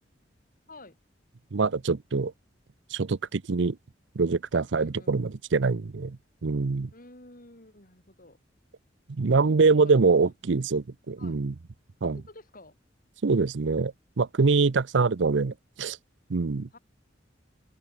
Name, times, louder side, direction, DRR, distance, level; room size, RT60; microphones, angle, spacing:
voice 1, 0.7-1.0 4.8-5.4 6.9-8.4 9.6-9.9 11.2-11.4 12.0-12.8 16.7-16.8, left 2 dB, 50° left, 7.7 m, -51 dB
voice 2, 1.5-2.3 2.9-3.8 4.2-6.2 6.4-6.9 9.1-11.5 12.0-12.2 13.2-16.0 16.3-16.7, right 4 dB, 70° right, 0.6 m, -24 dB
open air
head